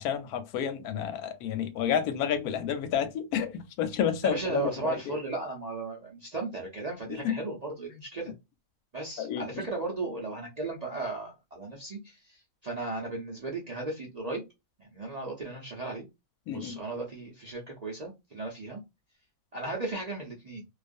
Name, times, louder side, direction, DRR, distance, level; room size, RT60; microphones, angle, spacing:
voice 1, 0.0-5.1 7.1-7.4 9.2-9.6 16.5-16.8, left 9 dB, 85° left, 1.1 m, -30 dB
voice 2, 4.2-8.3 8.9-14.4 14.8-16.1 16.5-18.8 19.5-20.7, right 3 dB, 45° right, 0.5 m, -36 dB
2.4 x 2.3 x 2.5 m
omnidirectional pair, 1.5 m